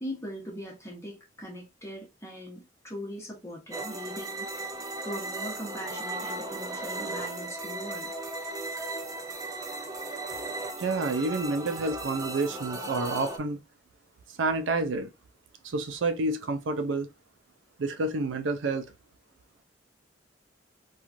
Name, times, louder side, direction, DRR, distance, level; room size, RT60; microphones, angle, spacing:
voice 1, 0.0-4.5 5.0-8.1, equal, 15° left, 0.9 m, -40 dB
sound 1, 3.7-13.4, right 2 dB, 20° right, 0.4 m, -36 dB
voice 2, 10.8-13.6 14.4-15.1 15.6-17.1 17.8-18.9, right 3 dB, 85° right, 0.4 m, -29 dB
3.0 x 2.4 x 2.4 m
head